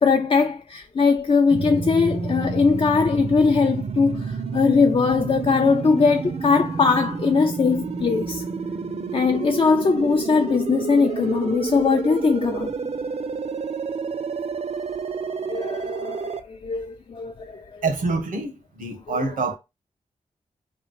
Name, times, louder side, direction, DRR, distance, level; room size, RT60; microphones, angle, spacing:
voice 1, 0.0-8.4 9.1-12.7 15.5-17.8 19.1-19.2, left 5 dB, 40° left, 0.4 m, -21 dB
sound 1, 1.5-16.4, right 5 dB, 50° right, 0.5 m, -29 dB
voice 2, 17.8-19.6, right 3 dB, 85° right, 0.9 m, -26 dB
3.0 x 2.4 x 3.1 m
cardioid pair, 50°, 14 cm